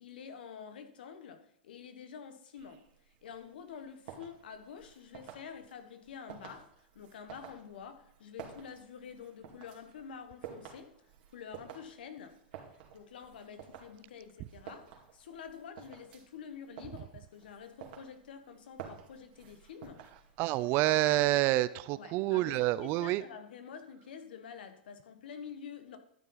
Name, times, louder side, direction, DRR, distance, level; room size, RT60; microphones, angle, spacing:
voice 1, 0.0-2.8 3.2-10.9 11.3-12.4 12.9-20.0 21.9-26.0, left 7 dB, 80° left, 8 dB, 1.5 m, -48 dB
sound 1, 2.6-20.8, right 8 dB, 60° right, 2.4 m, -52 dB
voice 2, 20.4-23.2, right 16 dB, 45° right, 17 dB, 0.5 m, -28 dB
12.0 x 6.9 x 4.0 m, 0.73 s
hypercardioid pair, 120°, 5 cm